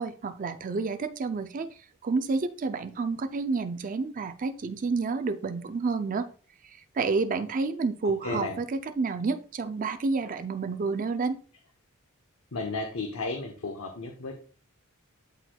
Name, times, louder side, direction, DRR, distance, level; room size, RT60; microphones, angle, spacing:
voice 1, 0.0-1.7 2.0-6.3 6.6-11.4, right 4 dB, 40° right, 9 dB, 0.4 m, -29 dB
voice 2, 8.0-8.6 12.5-14.4, left 3 dB, 65° left, 3 dB, 0.9 m, -34 dB
12.0 x 4.4 x 2.3 m, 0.39 s
head